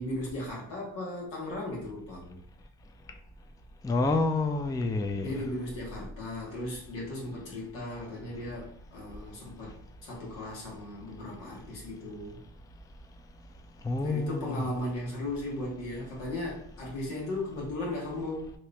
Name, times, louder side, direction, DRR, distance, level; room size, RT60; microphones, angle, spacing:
voice 1, 0.0-2.4 5.2-12.4 14.0-18.5, left 1 dB, 85° left, 1.4 m, -36 dB
voice 2, 3.8-5.3 13.8-14.6, left 3 dB, 10° left, 0.4 m, -28 dB
2.9 x 2.7 x 3.2 m
supercardioid pair, 55°, 42 cm